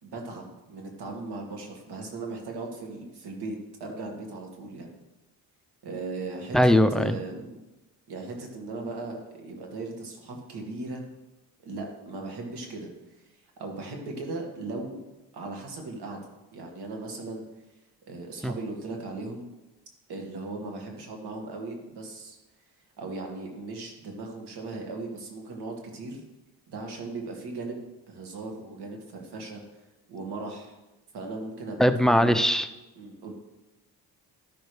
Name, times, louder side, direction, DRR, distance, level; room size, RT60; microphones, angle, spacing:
voice 1, 0.0-4.9 5.8-7.6 8.1-11.0 11.6-12.9 13.2-13.3 13.6-15.0 15.3-16.2 16.5-17.4 18.1-19.5 20.1-22.4 23.0-26.2 26.7-29.6 30.1-30.8 31.1-32.5 33.0-33.3, right 3 dB, 70° right, 1 dB, 2.2 m, -37 dB
voice 2, 6.5-7.2 18.4-18.5 31.8-32.7, equal, ahead, 10 dB, 0.6 m, -20 dB
13.0 x 6.1 x 3.4 m, 1.0 s
cardioid pair, 75°, 41 cm